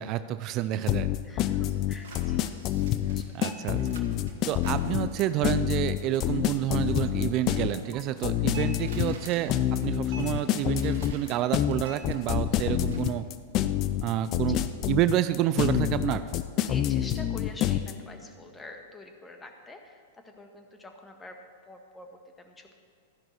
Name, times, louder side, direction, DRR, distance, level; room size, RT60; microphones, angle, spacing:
voice 1, 0.0-1.1 3.3-3.8 4.5-13.3 14.0-14.6 14.9-16.3, right 13 dB, 40° right, 13 dB, 0.4 m, -29 dB
sound 1, 0.9-17.9, left 12 dB, 40° left, 0.6 m, -27 dB
voice 2, 1.2-2.4 3.0-3.7 4.2-4.5 14.5-14.7 16.6-21.4 21.7-22.8, left 2 dB, 15° left, 4 dB, 1.4 m, -47 dB
sound 2, 1.7-13.0, right 4 dB, 65° right, 1.5 m, -48 dB
13.5 x 10.5 x 4.5 m, 2.2 s
figure-of-eight pair, 100°, 0 cm